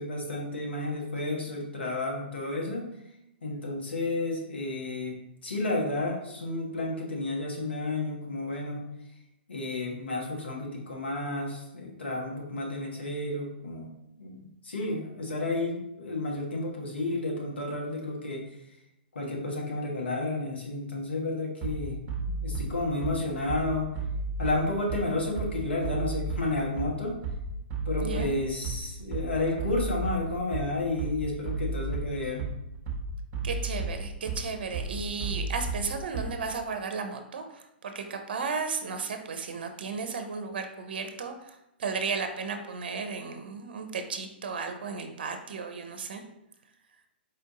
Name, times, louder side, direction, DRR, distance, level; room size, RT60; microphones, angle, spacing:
voice 1, 0.0-2.9 3.4-5.1 5.4-8.8 9.5-13.9 14.2-18.4 19.1-23.8 24.4-27.2 27.8-32.5, left 2 dB, 75° left, -1 dB, 1.2 m, -31 dB
Bass drum, 21.6-36.6, right 3 dB, 30° right, 0.8 m, -34 dB
voice 2, 28.0-28.3 33.4-46.2, right 5 dB, 60° right, 6 dB, 0.6 m, -34 dB
4.3 x 2.6 x 3.7 m, 0.86 s
figure-of-eight pair, 115°, 6 cm